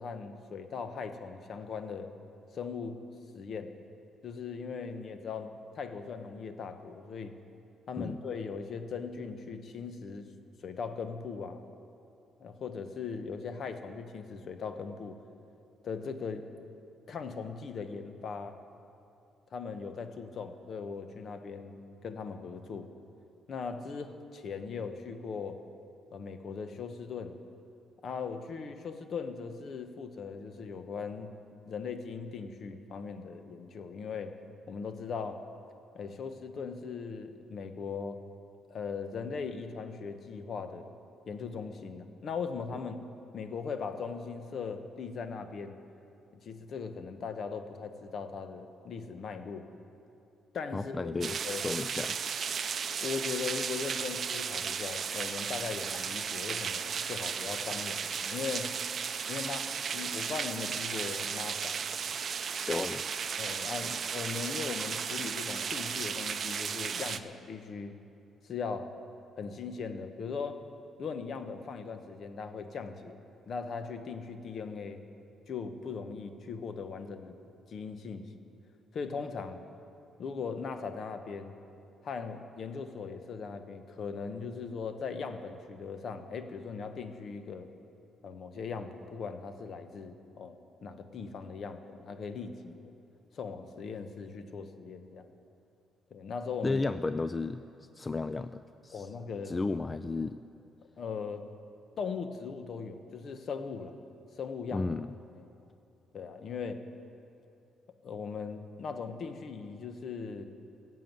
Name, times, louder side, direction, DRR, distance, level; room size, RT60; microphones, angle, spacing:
voice 1, 0.0-2.1 2.5-3.0 3.3-3.7 4.2-7.3 7.9-10.3 10.6-11.6 12.4-15.2 15.8-16.5 17.1-18.6 19.5-22.9 23.5-25.6 26.1-27.4 28.0-31.3 31.6-34.3 34.7-35.4 35.9-38.2 38.7-40.9 41.3-43.0 43.3-45.7 46.4-49.7 50.5-51.6 53.0-58.7 59.3-61.8 63.4-67.9 68.4-68.9 69.4-70.6 71.0-73.2 73.5-75.0 75.5-77.4 77.7-78.3 78.9-79.6 80.2-81.6 82.0-87.7 88.2-92.9 93.3-95.3 96.1-96.8 98.9-99.5 101.0-101.4 102.0-103.9 104.4-104.9 105.3-105.5 106.1-106.8 108.0-110.5, left 5 dB, 55° left, 8 dB, 1.0 m, -39 dB
voice 2, 50.7-51.4 51.6-52.2 62.7-63.0 96.6-97.6 98.0-99.1 99.5-100.4 104.7-105.1, left 3 dB, 25° left, 12 dB, 0.3 m, -33 dB
sound 1, 51.2-67.2, right 6 dB, 50° right, 0.5 m, -35 dB
15.0 x 7.7 x 9.2 m, 2.6 s
cardioid pair, 90°, 0 cm